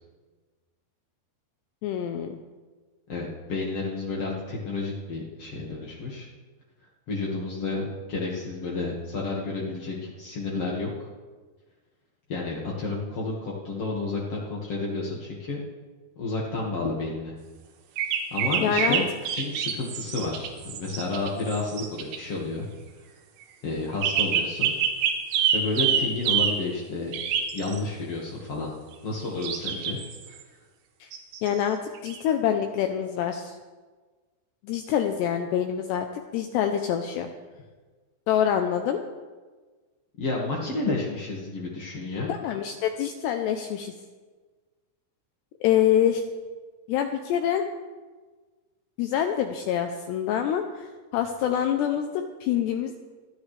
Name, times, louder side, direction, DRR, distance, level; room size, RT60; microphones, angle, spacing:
voice 1, 1.8-2.4 18.6-19.0 31.0-31.1 31.4-33.6 34.6-37.3 38.3-39.0 42.3-43.9 45.6-46.2 46.9-47.6 49.0-52.9, left 9 dB, 80° left, 5 dB, 2.4 m, -26 dB
voice 2, 3.1-6.3 7.1-11.1 12.3-15.6 16.1-17.3 18.3-19.0 19.3-22.7 23.6-24.7 25.5-27.1 27.5-28.7 29.0-30.0 30.2-30.4 40.2-42.3, left 3 dB, 65° left, -4 dB, 1.4 m, -31 dB
sound 1, 18.0-22.2 24.0-26.6 27.1-27.8 29.4-30.3 31.1-31.5 32.0-32.2, right 8 dB, 80° right, 3.8 m, -26 dB
27.5 x 10.5 x 3.3 m, 1.4 s
omnidirectional pair, 5.7 m